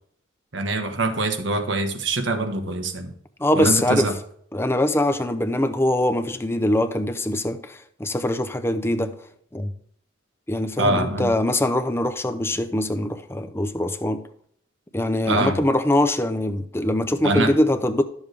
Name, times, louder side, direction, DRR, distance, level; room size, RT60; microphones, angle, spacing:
voice 1, 0.5-3.1 3.5-4.1 10.8-11.3 15.3-15.6 17.2-17.5, right 2 dB, 65° right, 6 dB, 1.3 m, -24 dB
voice 2, 3.4-4.1 4.5-9.1 9.5-9.7 10.5-14.2 14.9-18.0, left 1 dB, 15° left, 9 dB, 0.6 m, -23 dB
12.5 x 7.2 x 3.4 m, 0.65 s
head